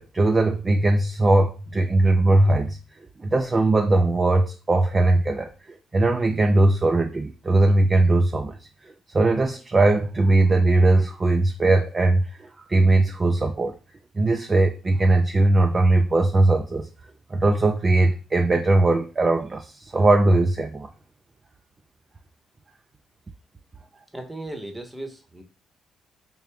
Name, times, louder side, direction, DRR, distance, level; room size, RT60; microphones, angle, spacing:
voice 1, 0.0-2.8 3.2-8.6 8.8-13.7 14.2-16.9 17.3-20.9, right 2 dB, 30° right, 4 dB, 0.3 m, -20 dB
voice 2, 24.1-25.4, right 1 dB, 5° right, 4 dB, 0.8 m, -36 dB
3.5 x 2.5 x 3.3 m, 0.33 s
cardioid pair, 90°, 0 cm